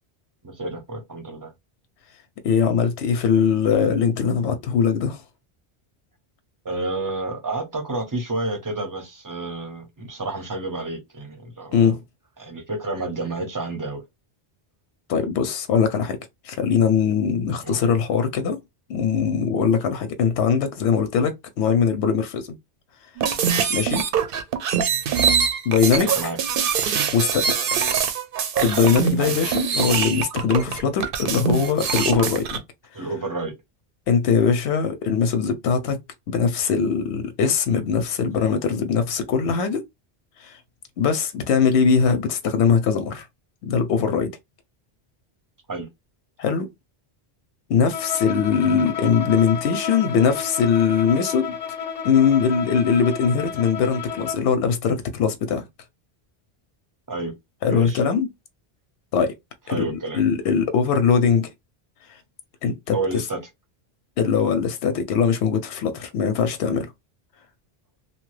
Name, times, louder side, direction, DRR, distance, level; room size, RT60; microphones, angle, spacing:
voice 1, 0.4-1.5 6.6-12.0 12.4-14.0 17.6-17.8 25.9-26.4 29.2-29.4 29.7-29.9 32.9-33.5 45.7-45.9 57.1-57.3 57.7-58.0 59.7-60.2 62.9-63.4, right 2 dB, 20° right, 0.6 m, -30 dB
voice 2, 2.4-5.2 11.7-12.0 15.1-16.2 16.4-18.6 18.9-22.5 23.7-24.1 25.7-26.1 27.1-27.5 28.6-32.6 34.1-36.0 36.3-39.8 40.4-40.6 41.0-43.3 43.6-44.3 46.4-46.7 47.7-51.6 52.0-55.6 57.6-58.3 59.1-59.3 59.7-61.5 62.6-63.2 64.2-66.9, left 6 dB, 90° left, 0.8 m, -21 dB
sound 1, 23.2-32.6, right 7 dB, 65° right, 0.7 m, -23 dB
Bowed string instrument, 47.9-54.6, left 7 dB, 45° left, 0.5 m, -31 dB
2.8 x 2.2 x 3.1 m
omnidirectional pair, 1.1 m